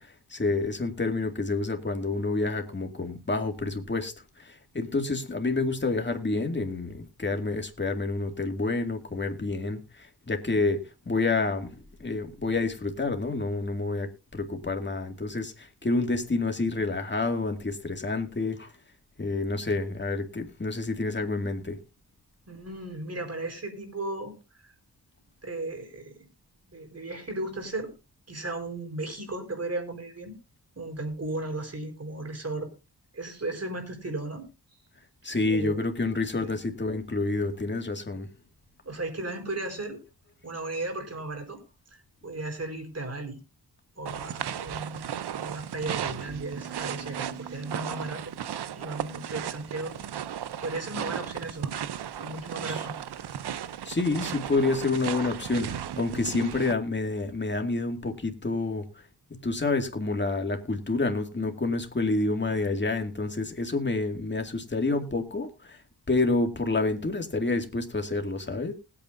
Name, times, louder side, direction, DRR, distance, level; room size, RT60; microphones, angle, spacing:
voice 1, 0.0-18.7 19.2-21.8 35.2-38.3 52.7-52.9 53.8-59.0 59.4-65.8 66.1-68.7, left 3 dB, 25° left, 5 dB, 2.2 m, -28 dB
voice 2, 22.5-24.7 25.4-26.3 26.7-27.9 28.3-30.4 30.8-32.7 33.1-34.5 35.5-35.8 36.4-36.6 38.8-40.0 40.4-41.6 41.9-43.4 44.0-48.3 48.7-50.2 50.6-51.8 52.2-53.0, right 2 dB, 40° right, 5 dB, 4.2 m, -35 dB
sound 1, 44.1-56.7, right 9 dB, 75° right, 0.8 m, -35 dB
20.0 x 8.8 x 2.6 m, 0.29 s
cardioid pair, 70°, 39 cm